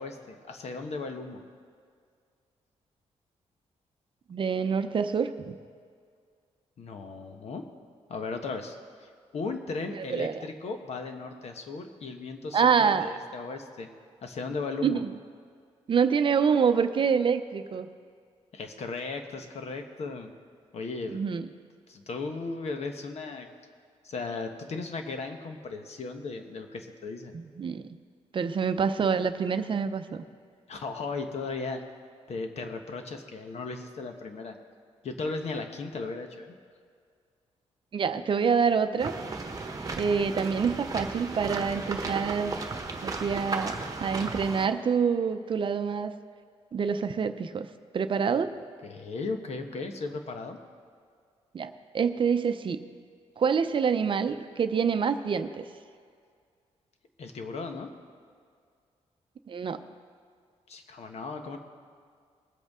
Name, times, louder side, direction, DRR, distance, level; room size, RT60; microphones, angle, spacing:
voice 1, 0.0-1.4 6.8-7.7 8.1-13.9 14.2-15.0 18.5-20.3 20.7-21.2 21.9-23.5 24.0-27.3 30.7-31.8 32.3-34.6 35.0-36.5 48.8-50.6 57.2-57.9 60.7-61.6, left 3 dB, 65° left, 5 dB, 1.2 m, -36 dB
voice 2, 4.3-5.5 9.9-10.4 12.5-13.1 14.8-15.1 15.9-17.9 21.1-21.5 27.3-27.8 28.3-30.2 37.9-39.1 40.0-42.5 43.0-43.7 44.0-46.1 46.7-47.7 47.9-48.5 51.5-52.8 53.4-55.6 59.5-59.8, right 6 dB, 45° right, 10 dB, 0.6 m, -26 dB
sound 1, 39.0-44.7, right 3 dB, 30° right, 1.2 m, -35 dB
20.5 x 8.0 x 3.7 m, 2.1 s
cardioid pair, 105°, 12 cm